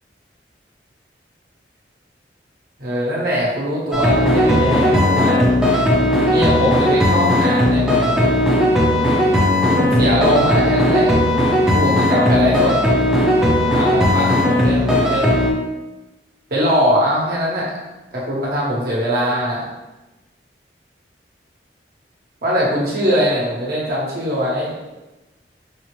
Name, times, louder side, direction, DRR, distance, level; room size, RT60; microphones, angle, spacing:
voice 1, 2.8-5.5 6.3-8.3 9.6-11.4 11.7-12.8 13.7-15.3 16.5-17.7 18.1-19.6 22.4-24.7, equal, 55° right, -5 dB, 1.0 m, -21 dB
sound 1, 3.9-15.5, left 1 dB, 5° right, 0.6 m, -16 dB
5.3 x 2.0 x 3.0 m, 1.1 s
head